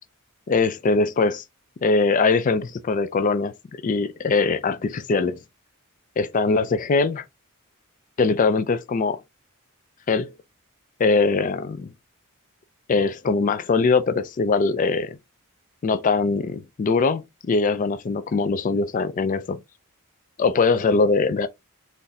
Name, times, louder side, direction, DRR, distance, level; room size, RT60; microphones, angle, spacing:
voice 1, 0.5-1.4 1.8-3.5 3.8-5.4 6.2-7.2 8.2-9.2 10.1-10.3 11.0-11.9 12.9-15.2 15.8-19.6 20.4-21.5, left 4 dB, 35° left, 0.3 m, -22 dB
3.8 x 2.5 x 2.6 m
head